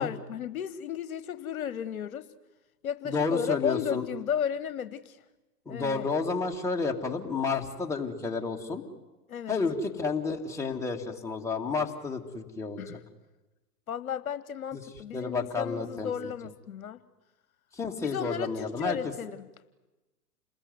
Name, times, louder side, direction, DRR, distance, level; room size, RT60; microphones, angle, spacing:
voice 1, 0.0-2.3 2.8-5.2 5.7-6.1 9.3-9.6 12.8-13.0 13.9-17.0 18.0-19.5, left 8 dB, 60° left, 14 dB, 1.2 m, -34 dB
voice 2, 3.0-4.1 5.7-8.8 9.5-12.8 14.7-14.8 15.1-16.1 17.7-19.0, left 4 dB, 5° left, 0 dB, 2.3 m, -31 dB
28.5 x 20.5 x 9.6 m, 1.1 s
figure-of-eight pair, 115°, 48 cm